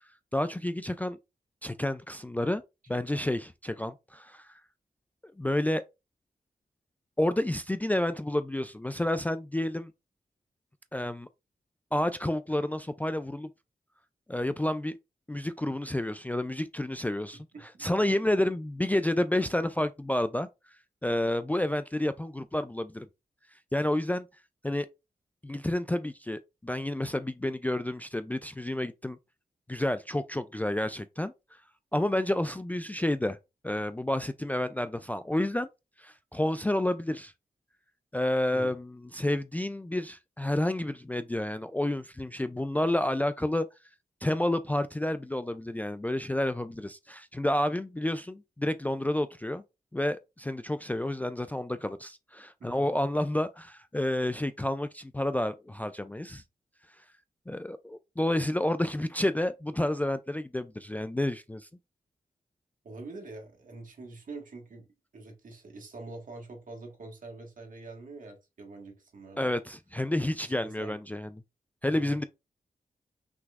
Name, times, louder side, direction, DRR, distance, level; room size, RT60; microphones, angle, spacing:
voice 1, 0.3-1.2 1.6-2.6 2.9-4.6 5.4-5.8 7.2-9.9 10.9-11.3 11.9-13.5 14.3-15.0 15.3-17.5 17.8-20.5 21.0-23.1 23.7-24.3 24.6-24.9 25.4-29.2 29.7-31.3 31.9-33.4 33.6-35.7 36.0-37.3 38.1-43.7 44.2-49.6 49.9-56.4 57.5-61.7 69.4-71.3 71.8-72.2, left 1 dB, 10° left, 0.3 m, -30 dB
voice 2, 2.9-3.3 17.5-17.9 38.5-38.7 52.6-52.8 62.8-64.9 65.1-69.5 70.4-71.0 71.8-72.2, right 3 dB, 65° right, 1.5 m, -45 dB
6.0 x 3.0 x 2.4 m
cardioid pair, 70°, 15 cm